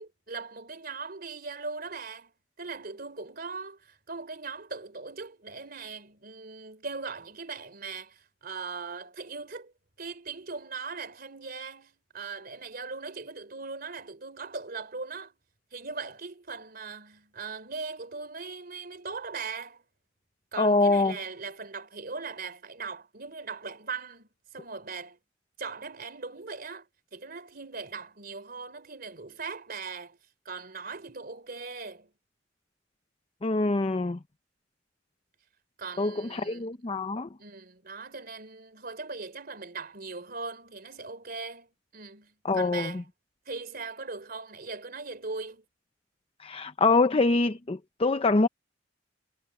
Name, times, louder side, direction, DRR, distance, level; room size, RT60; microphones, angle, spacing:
voice 1, 0.0-2.3 2.6-9.7 10.0-15.3 15.7-19.8 20.5-24.3 24.5-25.2 25.6-26.9 27.1-30.2 30.5-32.1 35.8-36.7 37.4-41.7 41.9-43.0 43.5-45.6, right 4 dB, 55° right, 3.6 m, -39 dB
voice 2, 20.6-21.2 33.4-34.2 36.0-37.3 42.4-43.0 46.4-48.5, left 3 dB, 30° left, 0.6 m, -25 dB
head